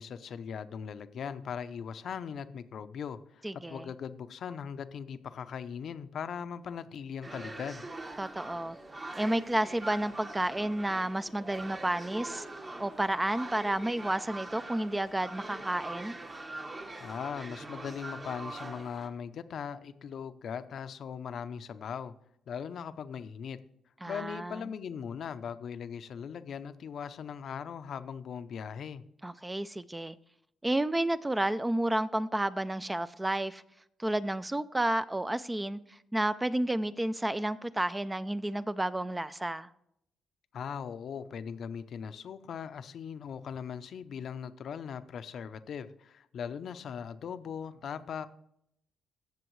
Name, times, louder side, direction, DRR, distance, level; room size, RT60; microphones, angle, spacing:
voice 1, 0.0-7.8 17.0-22.1 22.5-23.6 24.1-29.0 40.5-48.3, left 7 dB, 60° left, 0.6 m, -39 dB
voice 2, 3.4-3.9 8.2-8.8 9.2-12.4 12.8-16.2 24.0-24.7 29.2-30.2 30.6-33.6 34.0-39.7, right 1 dB, 15° right, 0.3 m, -31 dB
sound 1, 7.2-19.1, right 2 dB, 30° right, 1.0 m, -43 dB
16.0 x 6.9 x 3.1 m
cardioid pair, 95°, 0 cm